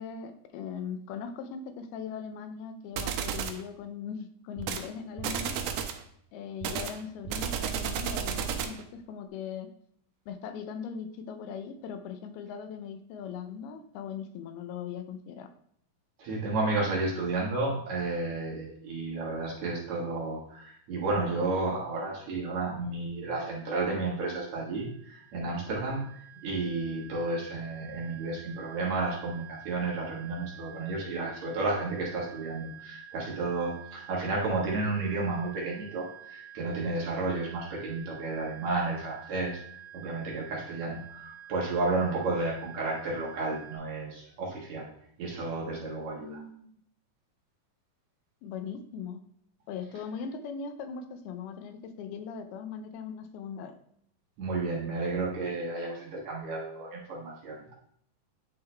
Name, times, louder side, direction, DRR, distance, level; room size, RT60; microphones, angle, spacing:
voice 1, 0.0-5.6 6.3-9.7 10.3-15.5 46.1-46.7 48.4-49.2 49.7-53.8, left 6 dB, 85° left, 7 dB, 2.6 m, -39 dB
sound 1, 3.0-3.6 4.6-4.9 5.2-6.0 6.6-8.8, right 8 dB, 90° right, 1.9 m, -32 dB
voice 2, 16.2-44.9 45.2-46.4 54.4-57.7, right 3 dB, 55° right, -4 dB, 2.4 m, -32 dB
sound 2, 24.7-43.8, right 10 dB, 65° left, 0.9 m, -49 dB
10.0 x 3.8 x 3.3 m, 0.66 s
omnidirectional pair, 4.3 m